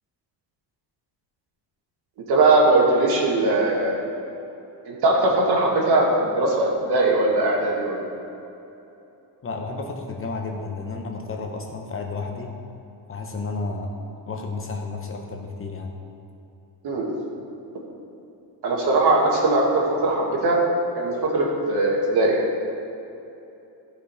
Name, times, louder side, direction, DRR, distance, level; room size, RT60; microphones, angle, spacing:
voice 1, 2.3-4.0 4.9-8.1 16.8-17.1 18.6-20.6 21.0-22.4, right 2 dB, 55° right, -2 dB, 2.2 m, -20 dB
voice 2, 9.4-12.5 13.1-13.9 14.3-15.9, left 3 dB, 30° left, 2 dB, 0.8 m, -32 dB
14.5 x 5.6 x 4.9 m, 2.9 s
cardioid pair, 155°, 45 cm